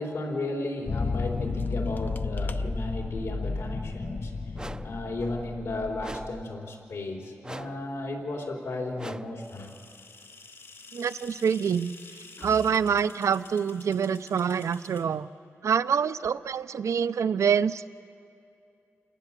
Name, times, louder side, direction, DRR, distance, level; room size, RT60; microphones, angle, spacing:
voice 1, 0.0-4.3 4.8-9.7 12.4-12.5, left 2 dB, 75° left, 0 dB, 3.8 m, -34 dB
sound 1, 0.9-6.4, left 4 dB, 40° left, 0.6 m, -32 dB
sound 2, 4.5-5.0 6.0-6.5 7.4-7.9 9.0-9.4, right 2 dB, 15° right, 0.5 m, -41 dB
sound 3, 9.4-15.0, left 4 dB, 55° left, 2.8 m, -50 dB
voice 2, 10.9-11.9 12.4-15.3 15.6-17.9, right 7 dB, 80° right, 14 dB, 0.6 m, -26 dB
28.0 x 18.5 x 7.5 m, 2.6 s
wide cardioid pair, 105°, 5 cm